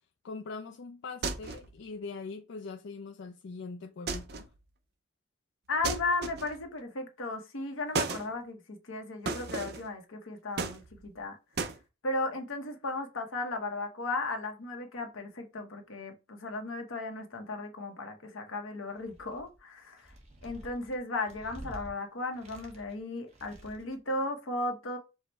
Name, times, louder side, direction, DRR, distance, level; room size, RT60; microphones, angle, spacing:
voice 1, 0.2-4.5, left 4 dB, 65° left, 0.4 m, -42 dB
sound 1, 1.2-1.8 4.1-4.6 5.8-6.7 7.9-8.3 9.3-9.9 10.6-11.2 11.6-11.8, right 4 dB, 55° right, 0.5 m, -34 dB
voice 2, 5.7-11.4 12.0-20.1 20.4-25.0, left 2 dB, 85° left, 1.0 m, -35 dB
sound 2, 18.9-19.6 20.0-21.9 22.3-23.0 23.3-24.0, right 1 dB, 35° right, 1.0 m, -49 dB
4.8 x 2.1 x 4.1 m
head